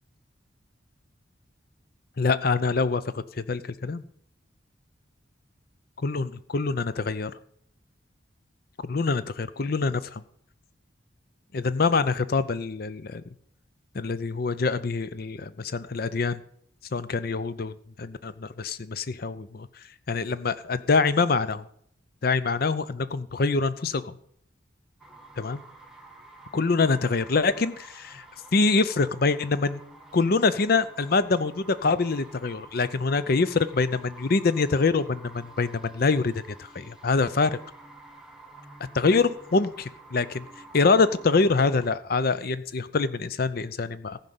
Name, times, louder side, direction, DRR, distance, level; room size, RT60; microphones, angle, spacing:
voice 1, 2.2-4.0 6.0-7.3 8.8-10.2 11.5-13.2 13.9-16.4 16.9-19.7 20.1-21.6 22.2-24.2 25.4-25.6 26.5-28.2 28.5-29.8 30.1-36.3 36.7-37.6 38.9-40.4 40.7-44.2, left 4 dB, 50° left, 15 dB, 0.6 m, -25 dB
sound 1, 25.0-41.9, right 2 dB, 5° right, 1.0 m, -50 dB
14.5 x 5.4 x 7.7 m, 0.65 s
head